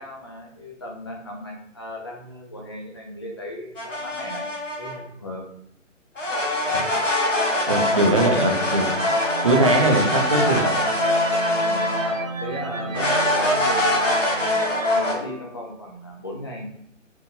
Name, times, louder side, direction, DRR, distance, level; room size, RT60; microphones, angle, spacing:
voice 1, 0.0-4.5 4.8-5.4 11.7-12.0 12.4-14.6 14.9-16.7, left 1 dB, 20° left, -1 dB, 0.6 m, -36 dB
sound 1, 3.8-5.0 6.2-12.3 12.9-15.1, left 1 dB, 70° left, 1.6 m, -23 dB
voice 2, 7.7-8.9 9.4-10.6, right 2 dB, 25° right, 2 dB, 0.6 m, -20 dB
sound 2, 8.3-14.8, right 3 dB, 50° left, 0.8 m, -36 dB
sound 3, 8.8-15.8, right 4 dB, 90° right, 0.6 m, -35 dB
4.3 x 3.8 x 2.7 m, 0.73 s
figure-of-eight pair, 145°, 38 cm